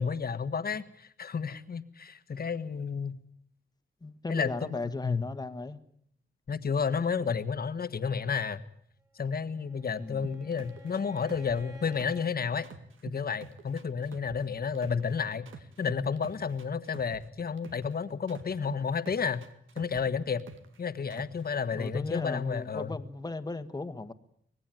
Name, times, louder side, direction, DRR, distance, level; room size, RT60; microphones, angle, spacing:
voice 1, 0.0-3.1 4.3-5.2 6.5-8.6 9.2-12.7 13.0-15.5 15.8-19.4 19.7-20.4 20.8-23.0, left 6 dB, 50° left, 1.5 m, -31 dB
voice 2, 4.0-5.8 10.0-10.3 21.7-24.1, left 3 dB, 20° left, 1.5 m, -36 dB
Bowed string instrument, 9.2-12.4, equal, 15° right, 3.5 m, -53 dB
sound 1, 10.2-12.3 12.6-15.1 15.5-17.9 18.3-20.8 21.1-21.5, right 6 dB, 85° right, 2.1 m, -46 dB
25.0 x 19.5 x 9.2 m
wide cardioid pair, 110°, 20 cm